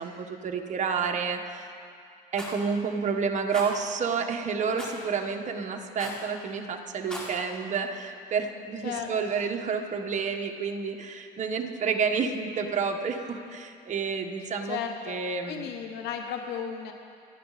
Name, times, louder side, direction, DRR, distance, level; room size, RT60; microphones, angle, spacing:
voice 1, 0.0-1.7 2.3-14.8 15.1-15.7, right 5 dB, 45° right, 4 dB, 1.5 m, -30 dB
Rattle, 2.3-2.6 3.5-3.7 4.8-5.0 6.0-6.3 6.9-7.3, equal, 5° left, 4.2 m, -38 dB
voice 2, 14.7-15.2 15.5-16.9, left 8 dB, 80° left, 4 dB, 1.0 m, -34 dB
28.0 x 10.5 x 4.2 m, 2.4 s
cardioid pair, 110°, 17 cm